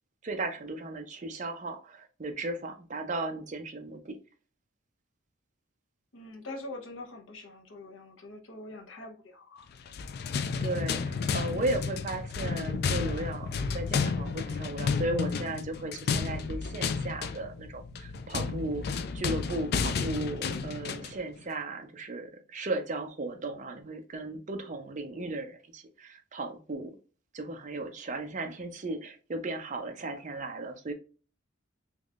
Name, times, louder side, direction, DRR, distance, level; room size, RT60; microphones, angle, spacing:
voice 1, 0.2-4.2 10.6-26.9 27.3-30.9, right 2 dB, 35° right, 0.5 m, -36 dB
voice 2, 6.1-9.7, left 2 dB, 70° left, 0.8 m, -44 dB
sound 1, 9.8-21.2, left 5 dB, 50° left, 0.3 m, -32 dB
3.5 x 3.1 x 2.4 m
head